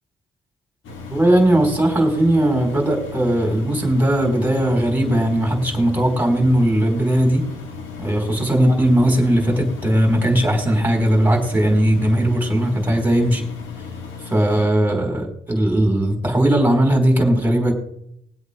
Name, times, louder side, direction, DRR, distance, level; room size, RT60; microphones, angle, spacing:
Engine, 0.8-14.6, left 5 dB, 80° left, 2.5 m, -35 dB
voice 1, 1.1-7.4 8.0-13.5 14.3-17.7, right 1 dB, 10° right, 1 dB, 4.4 m, -18 dB
22.0 x 8.1 x 3.5 m, 0.74 s
cardioid pair, 90°, 20 cm